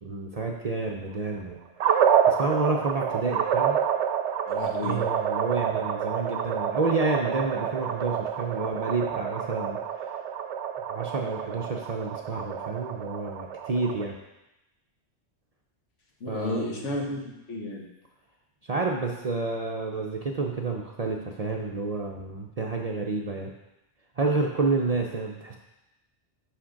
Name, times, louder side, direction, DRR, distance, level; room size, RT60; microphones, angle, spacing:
voice 1, 0.0-2.0 2.3-3.8 4.8-10.2 10.9-14.2 16.3-16.9 18.7-23.5 24.2-25.6, right 3 dB, 45° right, 0 dB, 0.5 m, -29 dB
sound 1, 1.8-14.1, right 8 dB, 75° right, 0.9 m, -28 dB
voice 2, 4.5-5.0 16.2-17.9, left 2 dB, 75° left, -1 dB, 1.5 m, -32 dB
6.1 x 5.2 x 5.0 m, 0.94 s
omnidirectional pair, 1.2 m